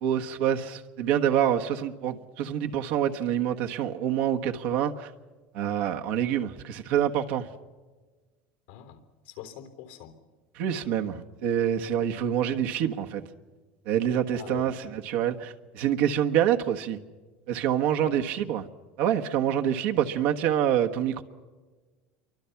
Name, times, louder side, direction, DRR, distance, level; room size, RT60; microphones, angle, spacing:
voice 1, 0.0-5.1 5.5-7.5 10.5-13.2 13.9-14.7 15.0-17.0 17.5-18.7 19.0-21.2, right 10 dB, 75° right, 1.4 m, -26 dB
voice 2, 8.7-10.2 14.3-15.0 18.0-18.5, left 10 dB, 90° left, 3.5 m, -44 dB
28.0 x 24.0 x 5.9 m
supercardioid pair, 110°, 6 cm